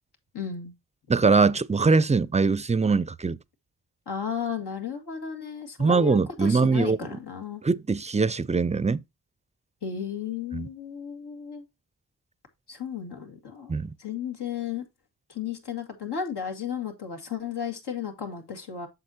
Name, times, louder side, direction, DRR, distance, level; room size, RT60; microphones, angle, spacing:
voice 1, 0.3-0.7 4.1-7.6 9.8-11.6 12.7-13.7 14.0-14.8 15.3-18.9, left 7 dB, 90° left, 2.0 m, -34 dB
voice 2, 1.1-3.4 5.8-7.0 7.6-9.0 10.5-10.7 13.7-13.9, right 4 dB, 20° right, 0.4 m, -22 dB
7.8 x 7.0 x 2.7 m
wide cardioid pair, 70°, 39 cm